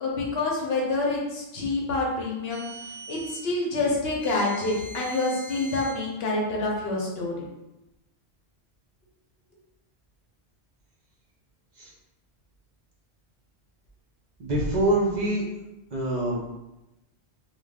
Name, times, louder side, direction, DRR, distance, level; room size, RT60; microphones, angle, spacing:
voice 1, 0.0-2.7 3.1-7.4, left 2 dB, 70° left, -2 dB, 0.9 m, -27 dB
sound 1, 2.5-3.5 4.2-6.0, right 2 dB, 90° right, 0.9 m, -42 dB
voice 2, 14.4-15.4 15.9-16.5, right 1 dB, 50° right, -4 dB, 0.7 m, -25 dB
2.4 x 2.3 x 3.3 m, 0.95 s
omnidirectional pair, 1.1 m